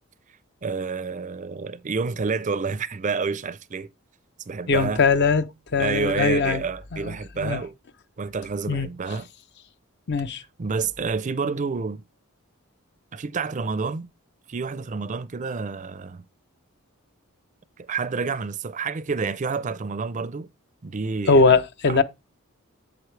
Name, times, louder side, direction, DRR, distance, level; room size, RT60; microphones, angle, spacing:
voice 1, 0.6-3.9 4.5-5.0 5.8-7.7 8.2-9.3 10.6-12.0 13.1-14.1 14.5-16.2 17.8-20.5 20.8-21.6 21.9-22.0, right 4 dB, 35° right, 0.5 m, -29 dB
voice 2, 4.7-5.4 5.7-6.6 6.9-7.6 8.7-8.9 10.1-10.4 21.3-22.0, left 4 dB, 50° left, 0.6 m, -20 dB
7.9 x 7.2 x 3.2 m
head